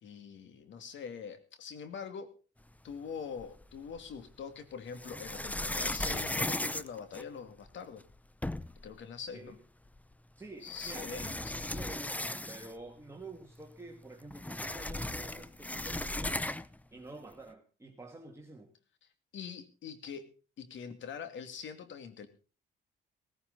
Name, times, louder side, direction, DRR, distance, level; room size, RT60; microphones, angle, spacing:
voice 1, 0.0-2.3 2.8-8.0 8.8-9.6 10.6-11.7 19.3-20.3 20.6-22.3, left 6 dB, 70° left, 9 dB, 2.4 m, -44 dB
sound 1, 3.4-4.1 4.9-7.7 8.1-8.2 8.4-8.9 10.0-10.1 10.7-12.9 13.2-13.3 13.6-16.8, left 1 dB, 5° left, 0.7 m, -36 dB
voice 2, 10.4-16.5 16.9-18.7, right 2 dB, 15° right, 0 dB, 2.3 m, -49 dB
16.5 x 15.5 x 4.0 m, 0.36 s
cardioid pair, 90°, 20 cm